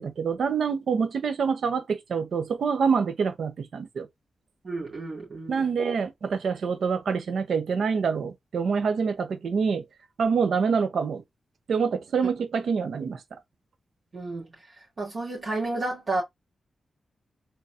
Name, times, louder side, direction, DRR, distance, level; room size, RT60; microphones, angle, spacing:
voice 1, 0.0-4.1 5.5-9.8 10.2-11.2 11.7-13.4, right 5 dB, 75° right, 0.8 m, -26 dB
voice 2, 4.6-5.7 14.1-14.5 15.0-16.2, right 2 dB, 55° right, 2.6 m, -31 dB
4.1 x 3.8 x 2.5 m
cardioid pair, 65°, 0 cm